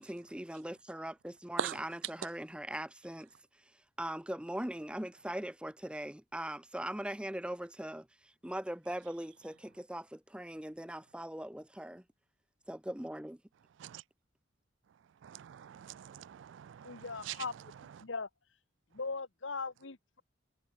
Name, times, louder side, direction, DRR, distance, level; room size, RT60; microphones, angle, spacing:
voice 1, 0.0-3.3 4.0-8.1 8.4-12.0 12.7-13.4, right 1 dB, 5° right, 0.6 m, -40 dB
voice 2, 15.3-17.0 17.3-17.4, right 9 dB, 75° right, 0.3 m, -41 dB
voice 3, 16.8-17.5 18.0-18.3 18.9-20.2, left 4 dB, 80° left, 1.4 m, -39 dB
head